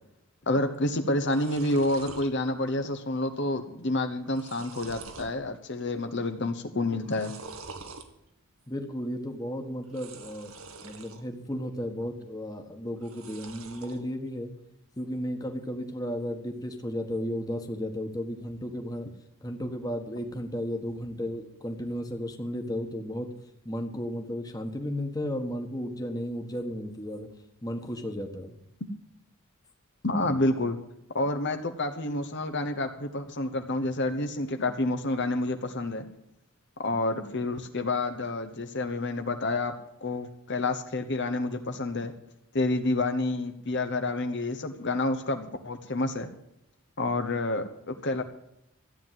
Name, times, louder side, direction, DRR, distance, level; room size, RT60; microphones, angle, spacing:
voice 1, 0.5-7.3 30.0-30.8 31.1-36.1 36.8-39.7 40.0-42.1 42.5-46.3 47.0-48.2, left 2 dB, 55° left, 7 dB, 1.1 m, -29 dB
sound 1, 0.7-0.8 1.1-2.3 2.7-3.1 3.4-3.5 4.1-5.4 5.8-6.3 7.0-8.1 9.8-11.2 11.6-12.2 13.0-14.0, right 4 dB, 85° right, 1.8 m, -46 dB
voice 2, 8.7-10.5 10.8-14.5 15.0-19.1 19.4-23.3 23.6-27.3 27.6-28.5, equal, 15° left, 4 dB, 1.5 m, -34 dB
14.0 x 9.5 x 7.6 m, 0.82 s
head